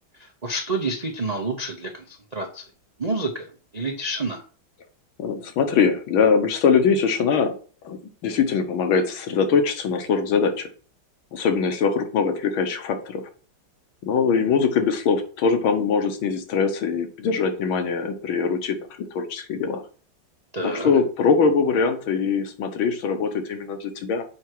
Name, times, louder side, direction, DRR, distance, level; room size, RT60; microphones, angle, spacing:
voice 1, 0.2-2.6 3.0-3.5 3.7-4.4 20.5-20.9, right 2 dB, 80° right, 1 dB, 0.3 m, -28 dB
voice 2, 5.2-7.5 7.8-10.7 11.3-13.2 14.0-19.8 20.6-24.2, left 5 dB, 85° left, 7 dB, 1.8 m, -22 dB
7.1 x 4.8 x 4.6 m, 0.40 s
omnidirectional pair, 2.2 m